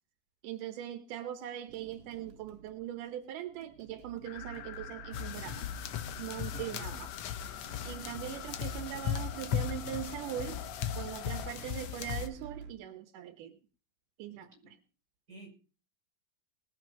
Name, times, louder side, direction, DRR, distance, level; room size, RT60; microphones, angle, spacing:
voice 1, 0.4-5.7 6.2-7.2 7.8-10.6 11.0-13.5 14.2-14.8, right 11 dB, 80° right, 9 dB, 2.5 m, -41 dB
sound 1, 1.7-12.7, right 7 dB, 65° right, 2.3 m, -52 dB
sound 2, 4.2-11.5, left 11 dB, 90° left, 2.6 m, -48 dB
sound 3, 5.1-12.3, left 9 dB, 65° left, 1.9 m, -37 dB
voice 2, 6.5-6.9 14.3-14.7 15.3-15.5, right 1 dB, 25° right, 1 dB, 5.9 m, -49 dB
20.0 x 7.8 x 5.2 m, 0.37 s
omnidirectional pair, 3.6 m